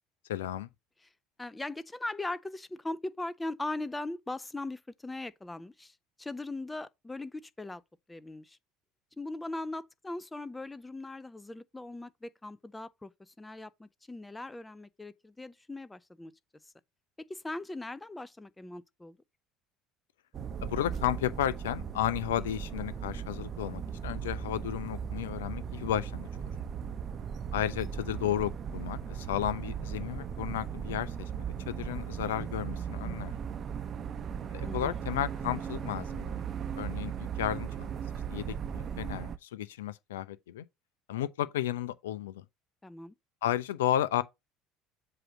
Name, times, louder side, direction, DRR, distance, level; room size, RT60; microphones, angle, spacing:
voice 1, 0.3-0.7 20.6-26.3 27.5-31.3 31.7-33.3 34.5-36.3 36.8-37.9 38.3-40.6 41.1-42.4 43.4-44.2, left 12 dB, 80° left, 0.6 m, -33 dB
voice 2, 1.4-7.8 8.1-8.6 9.2-16.3 17.3-19.2 34.6-35.0 42.8-43.1, left 2 dB, 15° left, 0.7 m, -39 dB
sound 1, 20.3-39.4, right 7 dB, 45° right, 0.8 m, -37 dB
7.8 x 2.9 x 6.0 m
hypercardioid pair, 70°, 0 cm